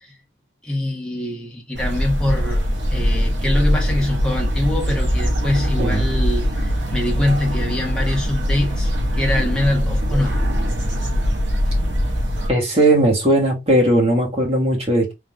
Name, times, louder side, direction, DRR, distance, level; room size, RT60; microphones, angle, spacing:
voice 1, 0.6-10.4, left 1 dB, 5° left, 1.3 m, -24 dB
sound 1, 1.7-12.5, equal, 80° right, 1.3 m, -21 dB
voice 2, 5.8-6.1 12.5-15.1, right 1 dB, 35° right, 1.7 m, -18 dB
3.8 x 3.2 x 3.1 m
head